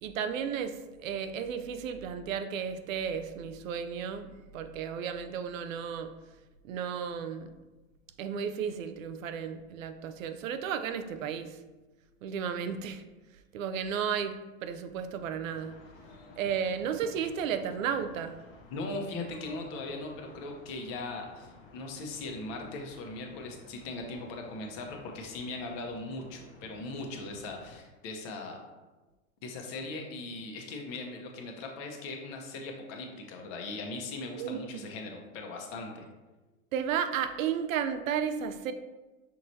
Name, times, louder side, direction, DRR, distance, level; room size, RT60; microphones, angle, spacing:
voice 1, 0.0-6.1 6.7-7.5 8.2-11.6 12.2-13.0 13.5-15.7 16.4-18.4 34.4-34.8 36.7-38.7, right 7 dB, 70° right, 9 dB, 0.5 m, -33 dB
sound 1, 15.4-27.8, left 3 dB, 30° left, 0.6 m, -54 dB
voice 2, 18.7-28.6 29.4-36.1, left 2 dB, 50° left, 2 dB, 1.0 m, -39 dB
5.7 x 3.0 x 2.7 m, 1.2 s
hypercardioid pair, 105°, 41 cm